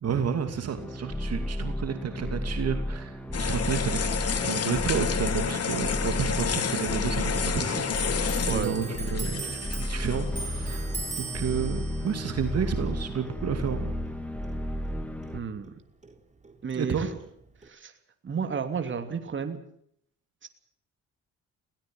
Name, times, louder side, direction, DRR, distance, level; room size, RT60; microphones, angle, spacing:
voice 1, 0.0-4.0 4.4-9.5 9.8-13.9 16.7-17.1, right 7 dB, 55° right, 7 dB, 2.6 m, -31 dB
sound 1, 0.7-15.4, left 1 dB, 5° left, 3.4 m, -33 dB
sound 2, 3.3-10.5, left 7 dB, 55° left, 2.8 m, -30 dB
Clock, 7.9-15.0 15.2-16.6 16.8-17.7, right 3 dB, 25° right, 3.6 m, -40 dB
voice 2, 8.5-8.9 15.3-15.7 16.6-17.2 17.6-17.9 18.2-19.6 20.4-20.5, right 6 dB, 40° right, 7 dB, 2.9 m, -32 dB
21.5 x 18.0 x 7.9 m, 0.68 s
cardioid pair, 90°, 30 cm